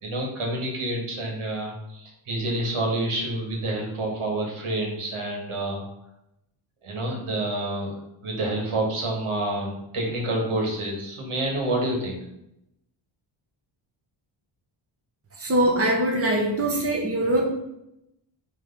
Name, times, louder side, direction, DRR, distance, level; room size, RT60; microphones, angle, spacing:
voice 1, 0.0-5.8 6.8-7.9 8.2-12.2, right 1 dB, 80° right, 0 dB, 2.3 m, -28 dB
voice 2, 15.4-17.4, right 1 dB, 30° right, -1 dB, 1.5 m, -22 dB
6.2 x 3.7 x 5.8 m, 0.83 s
cardioid pair, 105°, 49 cm